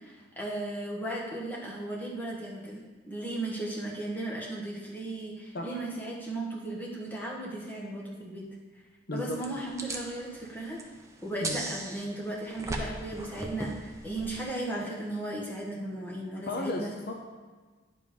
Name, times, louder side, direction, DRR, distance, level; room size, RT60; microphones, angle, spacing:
voice 1, 0.0-8.5 9.1-10.8 11.2-16.9, right 1 dB, 10° left, -5 dB, 1.6 m, -36 dB
sound 1, 9.3-14.4, right 2 dB, 15° right, 0.7 m, -39 dB
voice 2, 16.5-17.1, left 2 dB, 55° left, 1 dB, 0.8 m, -34 dB
9.6 x 5.1 x 5.3 m, 1.4 s
head